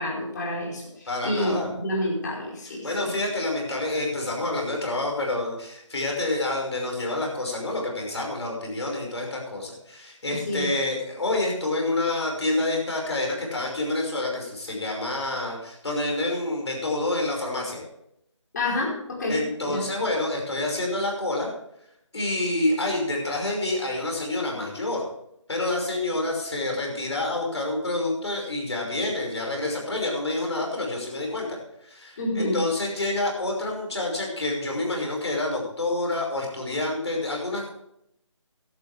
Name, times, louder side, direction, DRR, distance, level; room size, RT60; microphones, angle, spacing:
voice 1, 0.0-3.1 10.3-10.7 18.5-19.8 32.2-32.6, left 1 dB, 35° left, -3 dB, 4.8 m, -29 dB
voice 2, 1.1-1.7 2.8-17.8 19.3-21.5 22.1-25.1 25.5-37.7, left 2 dB, 60° left, 0 dB, 5.6 m, -28 dB
15.5 x 11.5 x 3.5 m, 0.77 s
figure-of-eight pair, 160°, 16 cm